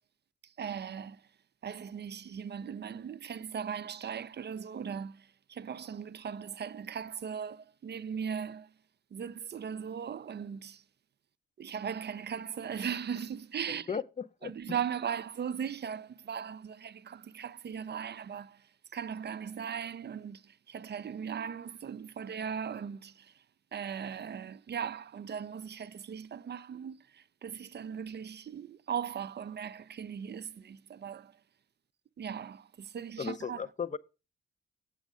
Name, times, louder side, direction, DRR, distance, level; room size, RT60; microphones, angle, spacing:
voice 1, 0.4-1.2 1.6-8.7 9.1-10.8 11.6-14.0 14.4-18.7 18.9-23.3 23.7-31.3 32.2-33.6, right 7 dB, 35° right, 0.5 m, -38 dB
voice 2, 13.9-14.5 33.2-34.0, left 6 dB, 25° left, 0.7 m, -35 dB
8.0 x 6.4 x 4.9 m
hypercardioid pair, 40°, 31 cm